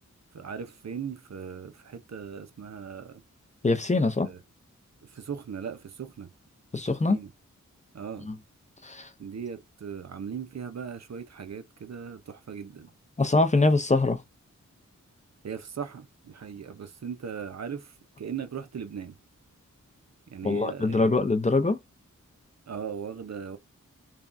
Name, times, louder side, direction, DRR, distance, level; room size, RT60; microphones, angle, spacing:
voice 1, 0.3-3.2 4.2-4.4 5.0-6.3 7.1-7.3 7.9-8.3 9.2-12.9 15.4-19.2 20.3-21.1 22.7-23.6, right 7 dB, 60° right, 0.6 m, -38 dB
voice 2, 3.6-4.3 6.7-7.2 8.3-8.4 8.8-9.1 13.2-14.2 20.4-21.8, left 3 dB, 25° left, 0.5 m, -23 dB
3.4 x 2.2 x 2.5 m
cardioid pair, 55°, 30 cm